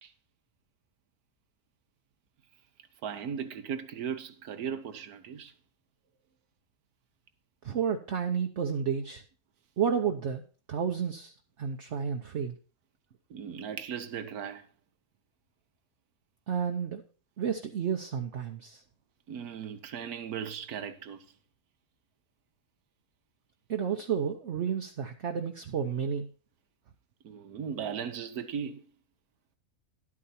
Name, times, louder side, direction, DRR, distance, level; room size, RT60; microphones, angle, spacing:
voice 1, 3.0-5.5 13.3-14.7 19.3-21.2 27.2-28.9, right 7 dB, 85° right, 1.5 m, -37 dB
voice 2, 7.6-9.2 9.8-10.4 10.7-12.6 16.5-17.0 17.4-18.8 23.7-26.3, right 7 dB, 55° right, 1.0 m, -31 dB
11.5 x 8.7 x 4.3 m
omnidirectional pair, 1.6 m